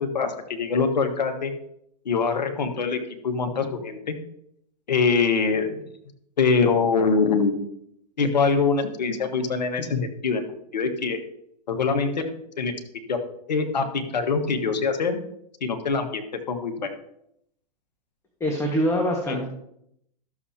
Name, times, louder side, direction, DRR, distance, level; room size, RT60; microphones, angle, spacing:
voice 1, 0.0-1.5 2.0-4.1 4.9-5.8 6.4-7.5 8.2-10.5 10.7-11.2 11.7-12.1 12.6-12.7 13.1-13.2 13.5-15.2 15.6-16.9 19.3-19.4, left 5 dB, 85° left, 6 dB, 1.5 m, -24 dB
voice 2, 18.4-19.5, equal, 15° left, 0 dB, 1.5 m, -24 dB
13.5 x 7.1 x 2.8 m, 0.75 s
hypercardioid pair, 115°, 21 cm